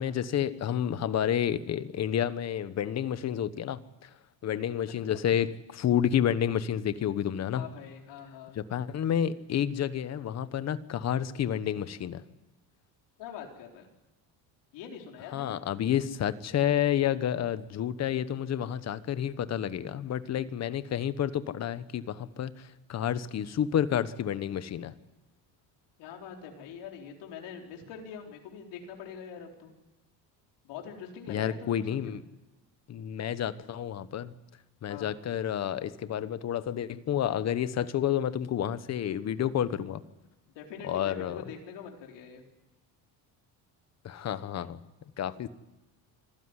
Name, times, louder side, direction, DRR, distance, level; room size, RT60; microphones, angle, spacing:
voice 1, 0.0-4.1 4.4-7.6 8.5-12.2 15.3-24.9 31.3-32.2 32.9-34.3 34.8-40.0 40.8-41.4 44.0-44.8 45.2-45.5, left 10 dB, 40° left, 14 dB, 1.1 m, -30 dB
voice 2, 7.5-8.6 13.2-13.9 14.7-15.6 26.0-29.7 30.6-32.2 34.9-35.1 40.6-42.4, left 7 dB, 85° left, 2 dB, 4.2 m, -44 dB
25.5 x 15.5 x 9.8 m, 1.1 s
cardioid pair, 150°, 41 cm